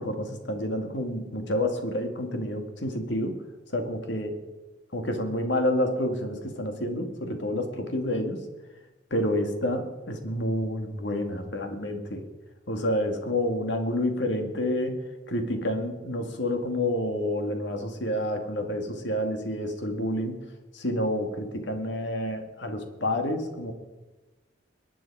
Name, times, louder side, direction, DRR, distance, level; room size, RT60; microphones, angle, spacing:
voice 1, 0.0-3.4 3.7-4.4 4.9-8.4 9.1-12.2 12.7-15.0 15.3-20.4 20.7-23.7, left 1 dB, 75° left, 5 dB, 2.2 m, -29 dB
22.5 x 9.8 x 4.9 m, 1.1 s
head